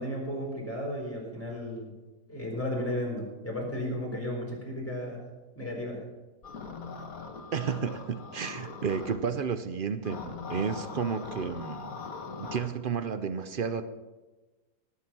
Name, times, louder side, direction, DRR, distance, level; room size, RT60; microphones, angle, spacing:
voice 1, 0.0-1.9 2.3-5.2 5.6-6.0, left 1 dB, 10° left, -2 dB, 3.9 m, -34 dB
sound 1, 6.4-9.2 10.0-12.7, left 4 dB, 60° left, 1.8 m, -41 dB
voice 2, 7.5-11.9 12.4-13.9, right 6 dB, 55° right, 11 dB, 0.5 m, -32 dB
18.0 x 8.1 x 6.0 m, 1.2 s
omnidirectional pair, 1.7 m